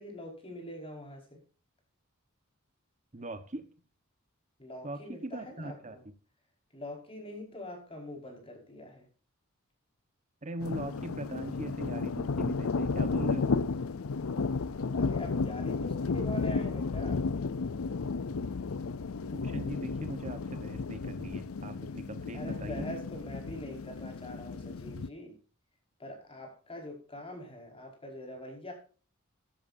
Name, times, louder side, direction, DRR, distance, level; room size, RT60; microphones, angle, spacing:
voice 1, 0.0-1.4 4.6-6.0 6.7-9.1 14.9-17.2 22.3-25.4 26.0-28.7, left 1 dB, 25° left, 2 dB, 5.2 m, -44 dB
voice 2, 3.1-3.7 4.8-6.0 10.4-13.6 19.3-22.9, right 2 dB, 35° right, 9 dB, 1.2 m, -40 dB
sound 1, 10.6-25.1, left 4 dB, 75° left, 0.6 m, -33 dB
15.0 x 12.5 x 2.7 m, 0.37 s
head